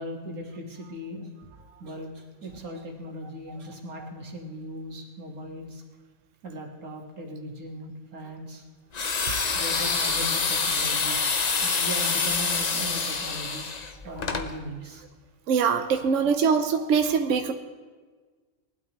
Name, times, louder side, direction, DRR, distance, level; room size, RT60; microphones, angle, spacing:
voice 1, 0.0-1.5 1.8-2.1 2.4-5.8 6.4-8.6 9.5-11.3 11.6-13.7 14.1-15.0, equal, 90° right, 1 dB, 2.1 m, -38 dB
sound 1, 8.9-14.5, left 4 dB, 40° left, 0.7 m, -26 dB
voice 2, 15.5-17.5, right 6 dB, 65° right, 6 dB, 1.0 m, -23 dB
19.5 x 12.0 x 3.0 m, 1.4 s
omnidirectional pair, 1.5 m